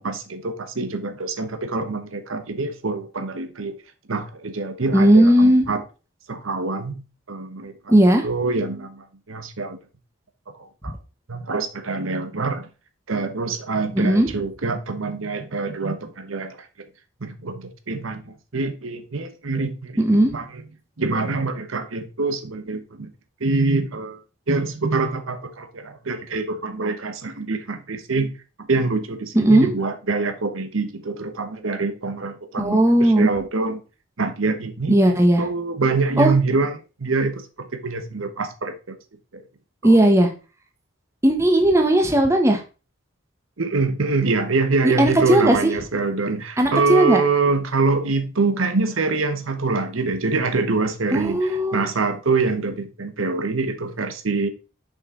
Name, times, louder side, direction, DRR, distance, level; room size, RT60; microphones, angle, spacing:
voice 1, 0.0-3.7 4.1-5.8 6.3-7.9 8.2-9.8 10.6-10.9 11.3-12.7 13.1-16.7 17.2-20.6 21.0-23.1 23.4-24.2 24.5-28.3 28.6-33.8 34.2-35.0 35.4-36.7 37.0-38.7 39.3-39.4 39.8-40.0 43.6-54.5, right 3 dB, 90° right, 1.0 m, -25 dB
voice 2, 4.9-5.6 7.9-8.3 13.9-14.3 20.0-20.3 29.3-29.7 32.6-33.3 34.9-35.4 36.2-36.3 39.8-40.3 41.2-42.6 44.8-45.7 46.6-47.2 51.1-51.8, right 1 dB, 15° right, 1.0 m, -16 dB
6.5 x 5.5 x 3.7 m
head